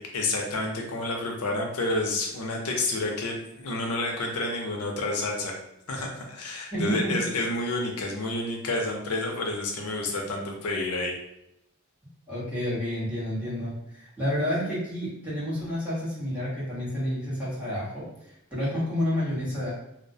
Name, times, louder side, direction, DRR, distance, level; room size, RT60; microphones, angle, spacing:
voice 1, 0.0-5.5 5.9-11.2, left 2 dB, 85° left, 1 dB, 0.5 m, -29 dB
voice 2, 6.7-7.3 12.3-19.7, equal, 5° right, -10 dB, 1.0 m, -30 dB
2.3 x 2.1 x 2.6 m, 0.80 s
head